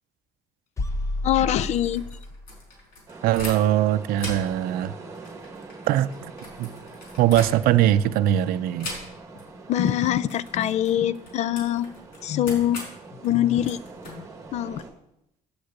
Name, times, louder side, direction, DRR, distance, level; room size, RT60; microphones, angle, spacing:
sound 1, 0.8-2.6, left 1 dB, 20° left, 0.8 m, -30 dB
voice 1, 1.2-2.1 9.7-11.9 12.2-12.8 13.2-13.8 14.1-14.3 14.5-14.8, left 11 dB, 45° left, 18 dB, 0.4 m, -23 dB
sound 2, 1.4-3.9 4.1-8.0 8.8-9.5 9.7-9.9 10.2-14.8, left 2 dB, 75° left, 5.1 m, -40 dB
sound 3, 3.1-14.9, right 3 dB, 20° right, 1.3 m, -44 dB
voice 2, 3.2-4.9 5.9-6.1 6.6-6.7 7.2-8.9, right 12 dB, 75° right, 14 dB, 0.5 m, -21 dB
8.0 x 6.6 x 8.2 m, 0.84 s
cardioid pair, 150°, 15 cm